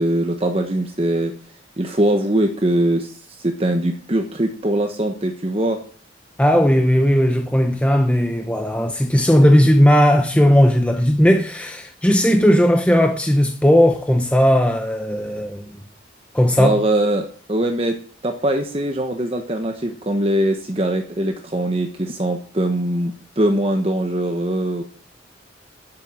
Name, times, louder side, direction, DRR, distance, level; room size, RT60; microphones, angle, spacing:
voice 1, 0.0-1.3 1.8-5.8 16.6-24.8, right 1 dB, 30° right, 1.1 m, -22 dB
voice 2, 6.4-15.6 16.3-16.8, equal, 5° left, 0.8 m, -16 dB
10.5 x 7.5 x 7.6 m
head